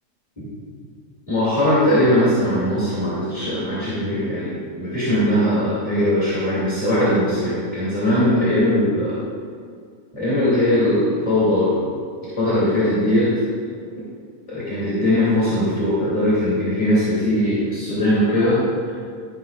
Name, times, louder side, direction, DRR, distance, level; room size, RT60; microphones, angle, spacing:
voice 1, 1.3-9.2 10.1-11.8 12.4-13.3 14.5-18.6, left 1 dB, 15° left, -10 dB, 1.8 m, -20 dB
12.0 x 11.0 x 2.4 m, 2.2 s
omnidirectional pair, 3.6 m